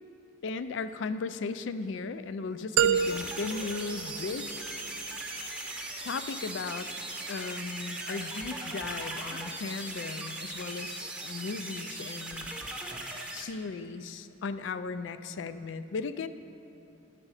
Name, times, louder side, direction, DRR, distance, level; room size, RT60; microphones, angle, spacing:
voice 1, 0.4-4.6 6.0-6.9 7.3-12.5 13.3-16.3, left 4 dB, 70° left, 12 dB, 0.4 m, -36 dB
sound 1, 2.8-4.8, right 8 dB, 90° right, 0.3 m, -29 dB
sound 2, 2.9-13.4, right 2 dB, 5° right, 0.7 m, -39 dB
9.9 x 7.4 x 4.8 m, 2.9 s
head